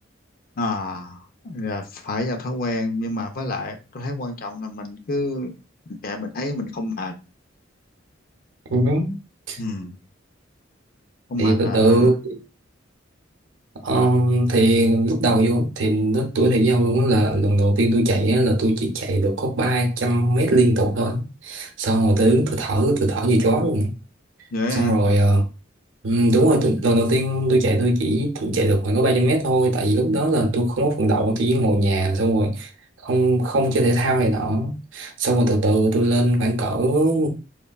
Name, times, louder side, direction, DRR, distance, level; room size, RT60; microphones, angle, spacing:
voice 1, 0.6-5.5 5.9-7.1 9.6-10.0 11.3-12.1 24.5-25.0, left 2 dB, 45° left, 0.4 m, -28 dB
voice 2, 8.7-9.2 9.5-9.6 11.4-12.4 13.8-23.9 24.7-25.5 26.0-32.7 33.0-37.3, right 1 dB, 70° right, 0.6 m, -20 dB
3.3 x 2.0 x 2.2 m
head